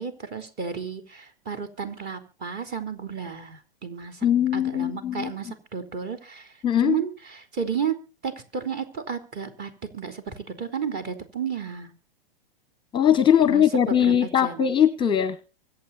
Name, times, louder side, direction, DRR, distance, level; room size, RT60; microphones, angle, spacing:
voice 1, 0.0-4.3 4.5-6.5 6.8-11.9 13.4-14.1 14.4-14.7, right 6 dB, 35° right, 7 dB, 3.7 m, -33 dB
voice 2, 4.2-5.3 6.6-7.0 12.9-15.4, left 9 dB, 15° left, 15 dB, 0.9 m, -20 dB
24.5 x 8.5 x 4.2 m, 0.35 s
hypercardioid pair, 125°, 29 cm